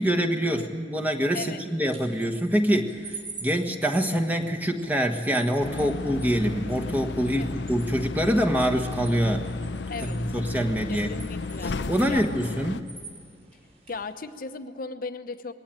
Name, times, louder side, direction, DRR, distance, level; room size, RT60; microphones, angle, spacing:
voice 1, 0.0-9.5 10.0-11.1 11.9-12.9, equal, 10° right, 3 dB, 1.3 m, -25 dB
sound 1, 1.7-14.1, right 4 dB, 40° right, 5.7 m, -47 dB
sound 2, 5.6-12.8, left 3 dB, 85° left, 0.6 m, -34 dB
voice 2, 10.9-11.7 12.1-12.3 13.9-15.5, left 4 dB, 55° left, 9 dB, 0.8 m, -36 dB
20.5 x 17.0 x 8.9 m, 2.4 s
head